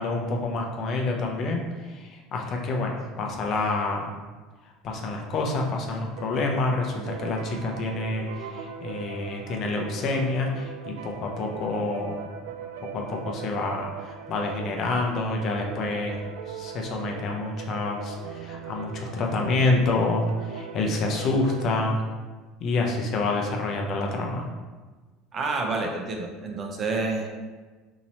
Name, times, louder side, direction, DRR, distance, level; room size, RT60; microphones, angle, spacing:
voice 1, 0.0-4.1 4.8-12.2 12.9-22.0 22.6-24.5, left 2 dB, 50° left, 1 dB, 0.6 m, -28 dB
sound 1, 6.2-21.8, right 7 dB, 75° right, 0.3 m, -40 dB
voice 2, 25.3-27.3, right 3 dB, 40° right, 1 dB, 0.7 m, -28 dB
2.9 x 2.7 x 4.1 m, 1.3 s
hypercardioid pair, 80°, 0 cm